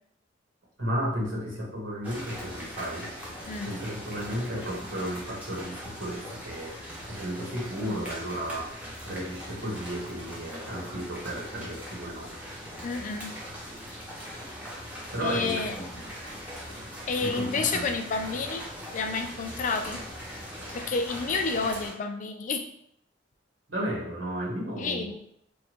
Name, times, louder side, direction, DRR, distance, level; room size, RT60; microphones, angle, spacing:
voice 1, 0.8-3.1 3.6-6.7 7.1-8.7 9.1-12.3 15.1-16.1 17.2-18.0 23.7-25.1, equal, 85° right, -4 dB, 1.2 m, -33 dB
sound 1, 2.0-21.9, equal, 10° right, 0.8 m, -40 dB
voice 2, 12.8-13.3 15.2-15.7 17.1-18.7 18.9-20.0 20.7-22.7 24.8-25.1, left 4 dB, 40° left, 6 dB, 0.3 m, -30 dB
3.5 x 2.2 x 2.8 m, 0.70 s
head